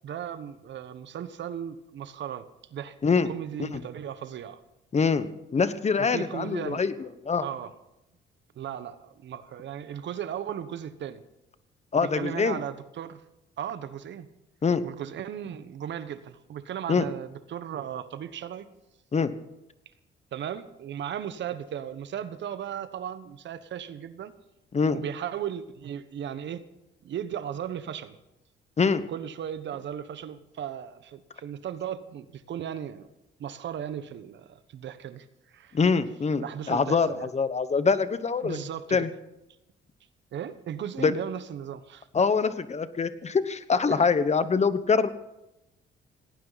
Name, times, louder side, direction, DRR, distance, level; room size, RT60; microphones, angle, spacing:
voice 1, 0.0-3.0 3.2-4.6 6.0-6.8 7.4-7.7 8.5-11.2 11.9-13.2 13.6-14.3 14.8-18.7 20.3-24.3 24.9-26.6 27.0-28.2 29.1-33.1 33.4-35.8 36.4-37.3 38.4-39.1 40.3-42.1 43.9-44.0, right 9 dB, 65° right, 13 dB, 1.2 m, -36 dB
voice 2, 4.9-6.9 7.2-7.4 11.9-12.6 14.6-14.8 16.9-17.1 19.1-19.3 24.7-25.0 28.8-29.0 35.7-38.6 38.9-39.1 41.0-41.1 42.1-45.1, left 5 dB, 35° left, 13 dB, 1.2 m, -24 dB
18.0 x 18.0 x 4.1 m, 0.92 s
cardioid pair, 90°, 20 cm